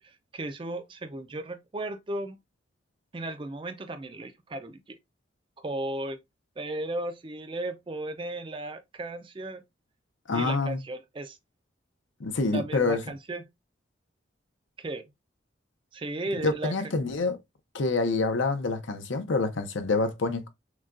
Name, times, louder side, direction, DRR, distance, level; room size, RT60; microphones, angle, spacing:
voice 1, 0.0-2.4 3.1-5.0 5.6-6.2 6.6-9.6 10.3-11.4 12.5-13.4 14.8-15.1 15.9-16.7, right 2 dB, 25° right, 0.4 m, -35 dB
voice 2, 10.3-10.8 12.2-13.0 16.4-17.4 17.7-20.5, left 3 dB, 75° left, 0.7 m, -27 dB
6.2 x 2.3 x 2.5 m
head